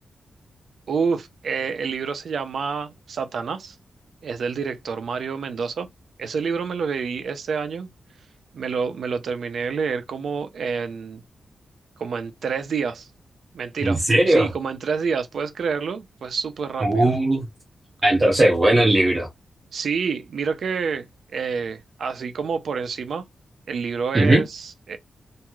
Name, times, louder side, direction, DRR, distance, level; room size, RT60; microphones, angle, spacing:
voice 1, 0.9-3.8 4.2-5.9 6.2-7.9 8.5-11.2 12.0-13.1 13.5-17.1 19.7-21.1 21.3-23.2 23.7-25.0, right 5 dB, 65° right, 0.5 m, -28 dB
voice 2, 13.8-14.5 16.8-17.4 18.0-19.3 24.1-24.4, right 1 dB, 25° right, 0.8 m, -18 dB
3.0 x 2.6 x 2.3 m
wide cardioid pair, 170°, 0 cm